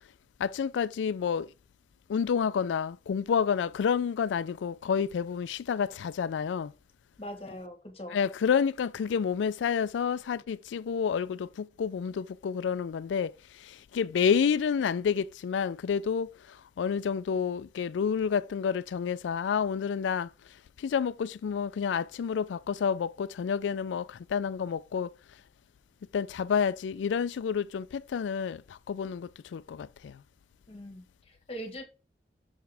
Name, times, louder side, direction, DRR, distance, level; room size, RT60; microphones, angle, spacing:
voice 1, 0.4-1.5 2.1-6.7 8.1-13.3 13.9-16.3 16.8-20.3 20.8-25.1 26.1-28.6 28.9-30.1, left 7 dB, 90° left, 0.3 m, -29 dB
voice 2, 7.2-8.2 30.7-31.8, equal, 35° left, 1.2 m, -41 dB
6.3 x 4.7 x 3.4 m
head